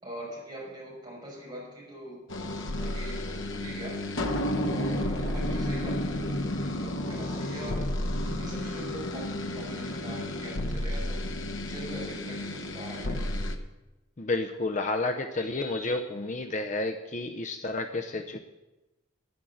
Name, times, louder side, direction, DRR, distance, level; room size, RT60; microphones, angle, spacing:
voice 1, 0.0-4.0 4.6-6.3 6.6-7.9 8.2-11.2 11.5-13.3, right 1 dB, 20° right, -5 dB, 5.8 m, -42 dB
sound 1, 2.3-13.6, left 1 dB, 70° left, 1.1 m, -31 dB
voice 2, 14.2-18.4, left 2 dB, 35° left, 6 dB, 0.6 m, -31 dB
10.0 x 9.5 x 7.8 m, 1.1 s
head